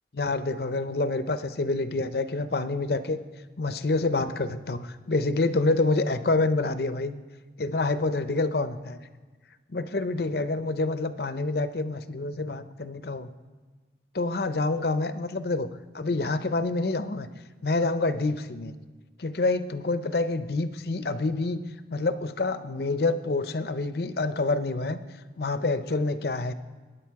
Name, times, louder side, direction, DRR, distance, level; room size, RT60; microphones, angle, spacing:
voice 1, 0.1-3.2 3.6-7.2 7.6-9.0 9.7-13.3 14.1-17.3 17.6-18.8 19.2-21.6 21.9-25.0 25.4-26.5, left 3 dB, 60° left, 12 dB, 0.7 m, -27 dB
22.0 x 9.9 x 4.7 m, 1.3 s
head